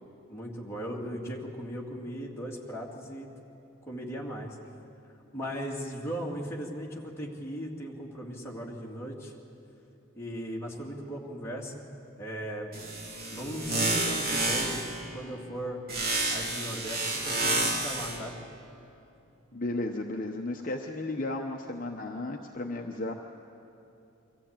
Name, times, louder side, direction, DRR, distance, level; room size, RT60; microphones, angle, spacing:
voice 1, 0.3-3.3 3.8-4.6 5.3-9.3 10.2-11.8 12.2-12.7 13.3-15.8 16.3-18.4, equal, 15° left, -3 dB, 2.4 m, -38 dB
sound 1, 12.7-15.0 15.9-18.2, right 2 dB, 45° right, 2.7 m, -29 dB
voice 2, 19.5-23.1, left 2 dB, 40° left, 2 dB, 0.9 m, -34 dB
23.5 x 14.0 x 8.8 m, 2.8 s
head